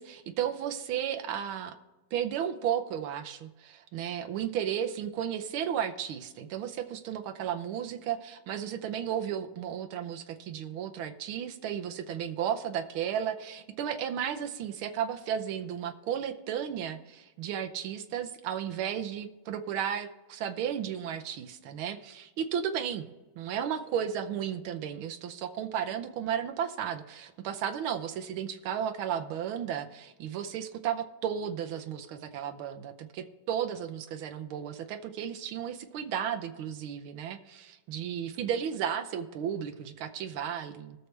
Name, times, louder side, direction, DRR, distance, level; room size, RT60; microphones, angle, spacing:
voice 1, 0.0-1.7 2.1-23.1 23.4-41.1, right 9 dB, 85° right, 7 dB, 1.7 m, -34 dB
19.5 x 6.6 x 3.3 m, 1.1 s
omnidirectional pair, 2.2 m